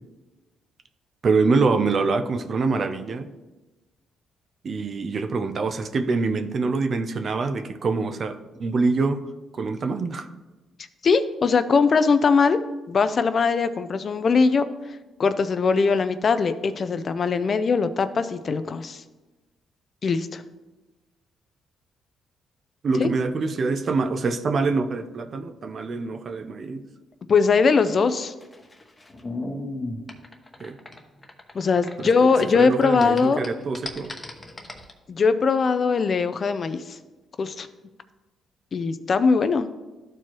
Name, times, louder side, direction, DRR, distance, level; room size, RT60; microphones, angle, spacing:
voice 1, 1.2-3.3 4.6-9.2 9.5-10.3 22.8-26.8 30.6-30.8 32.0-32.1 32.5-34.2, right 4 dB, 50° right, 8 dB, 0.6 m, -25 dB
voice 2, 11.0-12.6 12.9-14.6 15.2-19.0 20.0-20.4 23.0-23.1 27.3-28.3 31.5-33.4 35.1-37.0 37.4-37.7 38.7-39.7, left 5 dB, 45° left, 12 dB, 0.5 m, -21 dB
sound 1, 28.1-32.5 32.7-34.9, left 2 dB, 20° left, 1.0 m, -36 dB
12.5 x 4.6 x 3.0 m, 1.1 s
cardioid pair, 90°, 0 cm